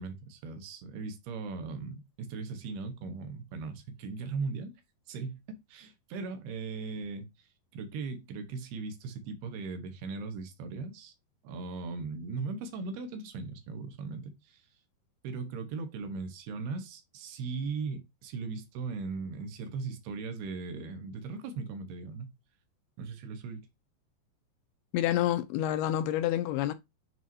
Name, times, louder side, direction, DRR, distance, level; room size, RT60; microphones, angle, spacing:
voice 1, 0.0-4.7 5.1-7.5 7.7-11.1 11.4-14.6 15.2-22.3 23.0-23.7, right 4 dB, 75° right, 3.0 m, -38 dB
voice 2, 24.9-26.7, left 12 dB, 80° left, 2.4 m, -28 dB
7.5 x 4.9 x 2.7 m
omnidirectional pair, 4.7 m